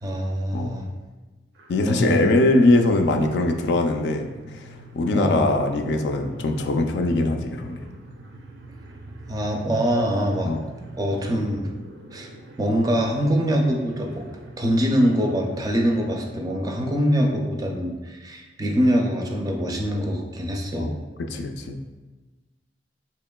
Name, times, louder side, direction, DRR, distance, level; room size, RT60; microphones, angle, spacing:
voice 1, 0.0-0.9 1.8-2.3 5.1-5.4 9.3-10.5 11.0-11.7 12.1-12.3 12.6-14.2 14.6-20.9, equal, 20° right, 1 dB, 0.4 m, -24 dB
sound 1, 1.5-16.3, right 2 dB, 80° right, 0.5 m, -44 dB
voice 2, 1.7-4.3 4.6-7.9 10.4-10.6 20.8-21.0 21.3-21.8, left 2 dB, 70° left, 5 dB, 0.3 m, -21 dB
4.3 x 2.8 x 2.2 m, 1.2 s
head